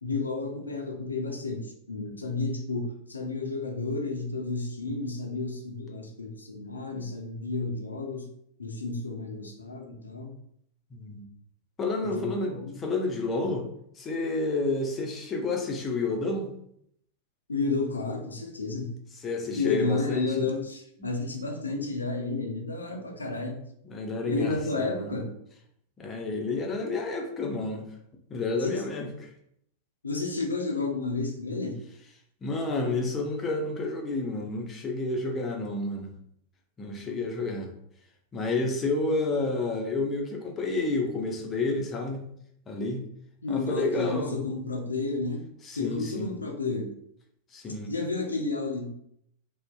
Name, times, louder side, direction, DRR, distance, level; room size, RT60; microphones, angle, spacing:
voice 1, 0.0-8.3 8.6-10.3 12.0-12.8 17.5-19.0 19.5-23.6 24.3-25.3 28.6-28.8 30.0-31.8 43.4-45.4 45.8-46.9 47.9-48.9, left 3 dB, 75° left, 3 dB, 0.4 m, -31 dB
voice 2, 10.9-11.2 11.8-13.7 14.0-16.5 19.2-20.5 23.8-25.1 26.0-27.8 28.3-29.3 32.4-36.1 36.8-37.7 38.3-42.3 42.7-43.1 43.5-44.4 45.6-46.3 47.5-47.9, left 3 dB, 25° left, 2 dB, 0.5 m, -30 dB
2.5 x 2.1 x 2.3 m, 0.71 s
figure-of-eight pair, 90°, 0 cm